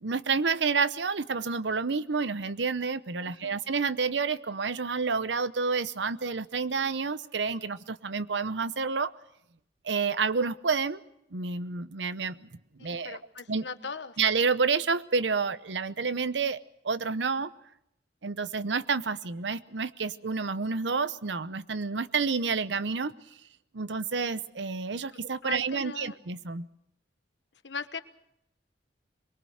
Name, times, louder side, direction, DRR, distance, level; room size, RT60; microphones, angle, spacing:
voice 1, 0.0-9.1 9.8-11.0 11.3-12.5 12.8-13.2 13.5-13.7 14.2-16.6 16.8-17.5 18.2-23.1 23.7-26.7, right 5 dB, 85° right, 15 dB, 0.8 m, -29 dB
voice 2, 3.2-3.6 12.8-14.2 25.4-26.2 27.6-28.0, left 5 dB, 85° left, 11 dB, 1.2 m, -39 dB
23.0 x 22.5 x 6.5 m, 0.76 s
head